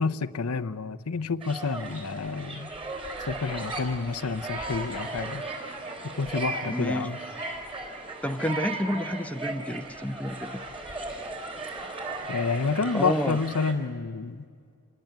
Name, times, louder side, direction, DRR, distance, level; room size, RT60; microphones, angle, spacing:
voice 1, 0.0-2.7 3.2-5.4 6.2-7.2 12.3-14.4, left 4 dB, 75° left, 12 dB, 0.8 m, -29 dB
sound 1, 1.4-13.7, right 2 dB, 25° right, 4.1 m, -36 dB
sound 2, 4.9-13.2, right 1 dB, 90° right, 5.8 m, -58 dB
voice 2, 6.7-7.1 8.2-10.9 12.9-13.4, equal, 5° left, 6 dB, 0.8 m, -30 dB
26.5 x 19.5 x 9.3 m, 2.2 s
head